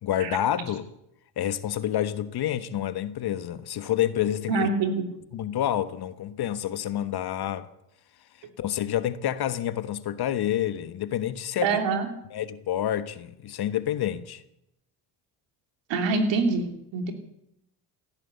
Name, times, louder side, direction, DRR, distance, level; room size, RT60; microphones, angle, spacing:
voice 1, 0.0-0.9 1.4-4.7 5.3-7.7 8.6-11.8 12.3-14.4, left 11 dB, 55° left, 1.3 m, -28 dB
voice 2, 4.5-5.0 11.6-12.1 15.9-17.1, right 4 dB, 70° right, 3.1 m, -25 dB
16.5 x 10.5 x 8.2 m
supercardioid pair, 70°, 46 cm